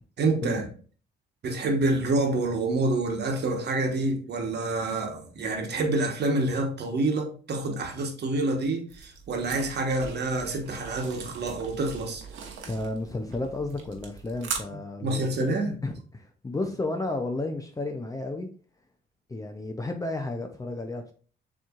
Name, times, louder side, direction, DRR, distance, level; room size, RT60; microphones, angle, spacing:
voice 1, 0.2-0.7 1.4-12.2 15.0-15.7, right 2 dB, 55° right, 1.2 m, -27 dB
sound 1, 8.9-14.6, right 6 dB, 85° right, 1.0 m, -40 dB
voice 2, 12.7-18.5 19.3-21.1, left 2 dB, 15° left, 0.5 m, -32 dB
6.9 x 3.0 x 2.4 m
cardioid pair, 90°, 20 cm